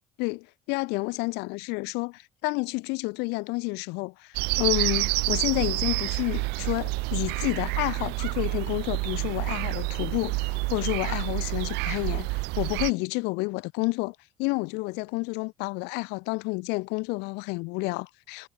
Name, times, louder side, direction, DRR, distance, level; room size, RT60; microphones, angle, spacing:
voice 1, 0.2-18.5, left 27 dB, 80° left, 0.5 m, -30 dB
sound 1, 4.3-12.9, right 25 dB, 85° right, 0.9 m, -28 dB
cardioid pair, 105°, 17 cm